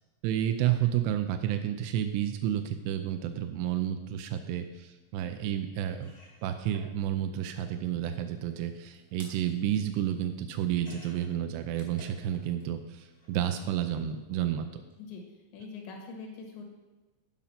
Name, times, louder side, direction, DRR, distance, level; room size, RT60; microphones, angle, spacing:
voice 1, 0.2-6.1 6.4-14.8, right 11 dB, 85° right, 7 dB, 2.4 m, -31 dB
sound 1, 5.4-5.5 5.9-12.6 12.9-13.7 14.7-14.9 15.2-15.3, equal, 5° left, 0.7 m, -56 dB
voice 2, 15.5-16.6, left 4 dB, 75° left, 2 dB, 3.6 m, -43 dB
11.0 x 5.2 x 5.8 m, 1.2 s
omnidirectional pair, 5.4 m